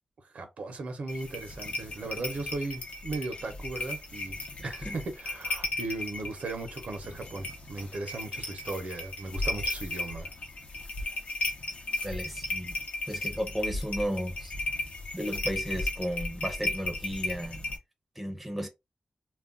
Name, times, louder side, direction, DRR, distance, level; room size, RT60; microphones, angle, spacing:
voice 1, 0.3-4.4 4.6-10.3, right 3 dB, 70° right, 0.7 m, -37 dB
sound 1, 1.1-17.8, left 2 dB, 65° left, 0.6 m, -35 dB
voice 2, 4.6-4.9 12.0-12.8 13.1-14.5 15.1-17.6 18.2-18.7, equal, 5° right, 0.6 m, -34 dB
2.3 x 2.1 x 3.7 m
wide cardioid pair, 155°, 2 cm